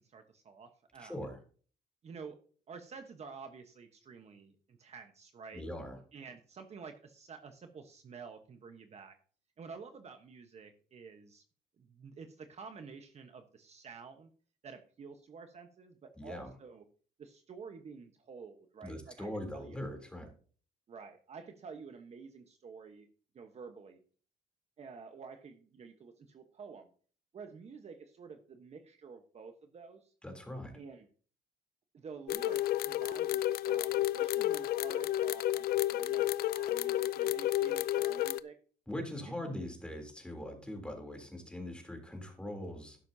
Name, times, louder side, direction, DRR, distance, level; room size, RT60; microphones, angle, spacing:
voice 1, 0.1-1.3 2.0-2.4 2.7-5.6 6.1-9.2 9.6-11.4 11.8-14.3 14.6-16.8 17.2-19.8 20.9-23.1 23.3-24.0 24.8-26.9 27.3-30.1 30.7-31.1 31.9-38.5 39.2-39.5, right 5 dB, 40° right, 6 dB, 1.2 m, -50 dB
voice 2, 1.0-1.4 5.5-6.0 16.2-16.5 18.8-20.3 30.2-30.8 38.9-43.0, left 1 dB, 5° left, 3 dB, 3.3 m, -41 dB
sound 1, 32.3-38.4, left 13 dB, 65° left, 0.5 m, -31 dB
12.0 x 10.5 x 2.8 m, 0.42 s
cardioid pair, 110°, 17 cm